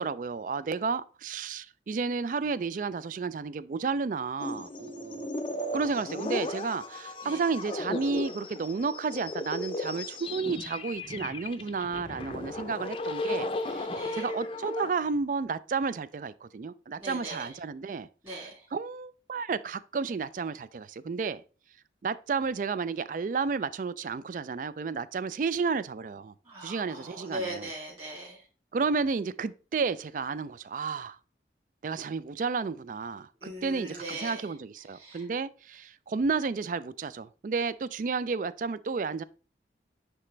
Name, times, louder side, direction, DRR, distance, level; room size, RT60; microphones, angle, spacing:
voice 1, 0.0-5.3 5.7-18.1 18.7-21.4 22.0-26.3 26.6-27.6 28.7-31.2 31.8-39.2, right 4 dB, 45° right, 0.3 m, -32 dB
sound 1, 4.4-14.9, left 2 dB, 30° left, 0.5 m, -35 dB
voice 2, 13.9-14.3 17.0-17.6 18.2-18.7 26.4-28.5 33.4-35.3, right 1 dB, 30° right, 2.8 m, -40 dB
9.7 x 3.3 x 3.2 m
head